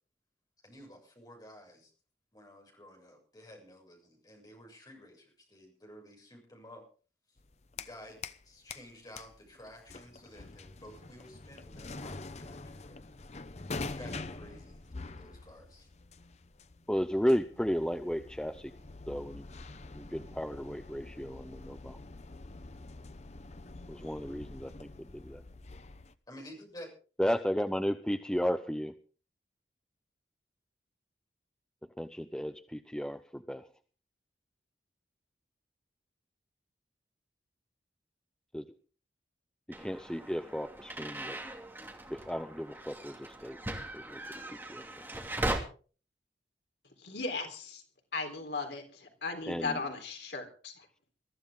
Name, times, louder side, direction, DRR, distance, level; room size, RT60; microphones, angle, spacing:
voice 1, 0.6-1.9 2.3-6.8 7.7-13.1 13.8-15.9 26.3-26.9, equal, 20° left, 1 dB, 6.9 m, -52 dB
sound 1, 7.4-8.4 8.7-26.2, left 3 dB, 40° left, 0.8 m, -45 dB
voice 2, 16.9-18.7 19.1-19.4 19.9-22.0 23.9-24.9 25.2-25.4 27.2-28.9 32.0-33.6 38.5-38.6 39.7-41.4 42.1-43.6 43.9-44.2 44.5-44.8 49.5-49.8, equal, 5° left, 9 dB, 0.7 m, -34 dB
sound 2, 39.7-45.6, right 1 dB, 10° right, 2.6 m, -39 dB
voice 3, 47.0-47.8 48.1-50.8, left 3 dB, 75° left, 4 dB, 3.8 m, -37 dB
22.5 x 14.0 x 3.7 m, 0.40 s
head